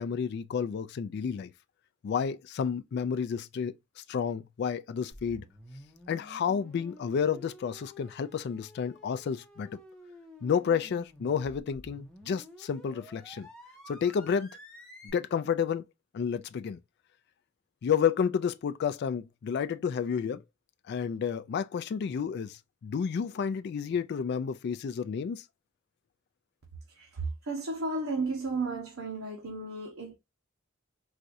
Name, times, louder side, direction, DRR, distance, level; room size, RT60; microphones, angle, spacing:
voice 1, 0.0-1.5 2.0-5.4 6.1-9.7 10.4-13.5 13.9-14.5 15.0-15.8 16.1-16.8 17.8-20.4 20.9-25.4, left 7 dB, 50° left, 0.3 m, -31 dB
sound 1, 5.1-15.1, equal, 5° left, 0.9 m, -51 dB
voice 2, 26.9-30.1, right 3 dB, 80° right, 0.9 m, -34 dB
4.1 x 2.4 x 2.5 m
head